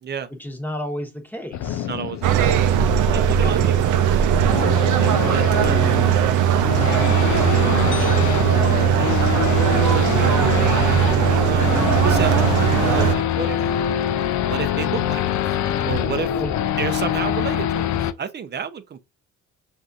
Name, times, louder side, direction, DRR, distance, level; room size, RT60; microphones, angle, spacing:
voice 1, 0.4-1.9 3.4-3.7 10.2-10.7 16.3-16.5, left 1 dB, 5° left, 1.1 m, -32 dB
Race car auto racing / Idling / Accelerating revving vroom, 1.5-18.1, left 10 dB, 65° left, 0.5 m, -25 dB
voice 2, 1.9-2.5 3.1-3.8 4.6-10.5 11.3-13.6 14.4-15.6 15.8-16.3 16.8-19.0, right 7 dB, 35° right, 0.6 m, -32 dB
sound 1, 2.2-13.1, right 10 dB, 80° right, 0.5 m, -19 dB
sound 2, 7.9-10.3, left 6 dB, 40° left, 0.8 m, -43 dB
6.1 x 2.7 x 2.4 m
cardioid pair, 90°, 30 cm